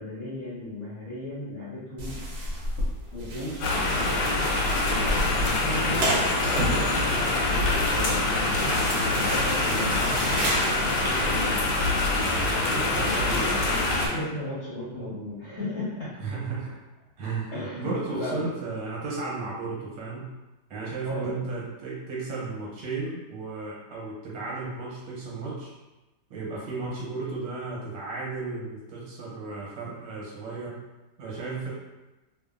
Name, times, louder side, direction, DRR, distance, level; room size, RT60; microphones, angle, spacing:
voice 1, 0.0-2.2 3.1-4.6 5.4-8.8 9.1-11.7 12.6-16.1 17.5-18.4 21.0-21.3, left 1 dB, 50° left, -10 dB, 1.0 m, -35 dB
sound 1, 2.0-11.2, right 1 dB, 70° right, 1.1 m, -32 dB
sound 2, 3.6-14.1, left 2 dB, 85° left, 1.2 m, -25 dB
voice 2, 16.2-16.7 17.2-20.3 20.7-25.7 26.3-30.8 31.2-31.7, right 3 dB, 90° right, -6 dB, 1.4 m, -34 dB
2.8 x 2.5 x 2.4 m, 1.1 s
omnidirectional pair, 1.9 m